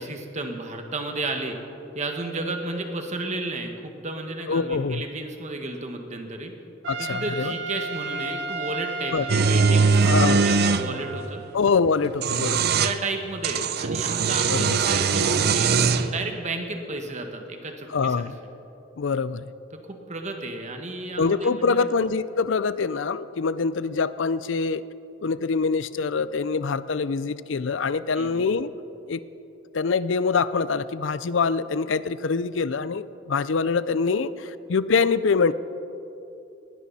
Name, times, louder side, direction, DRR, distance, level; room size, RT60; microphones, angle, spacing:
voice 1, 0.0-1.6 1.9-6.5 7.0-11.4 12.8-18.3 19.7-21.9 28.1-28.5, right 2 dB, 40° right, 4 dB, 1.7 m, -33 dB
voice 2, 4.5-5.1 6.9-7.5 9.1-9.3 10.1-10.5 11.5-12.7 14.5-14.8 17.9-18.3 19.0-19.5 21.2-24.8 25.2-28.7 29.1-29.2 29.7-35.5, left 4 dB, 80° left, 16 dB, 0.5 m, -24 dB
Trumpet, 6.8-11.4, right 3 dB, 75° right, 1.4 m, -33 dB
sound 1, 9.3-10.9 12.0-13.0 13.4-16.1, right 5 dB, 55° right, 0.6 m, -21 dB
20.0 x 16.5 x 4.2 m, 2.8 s
head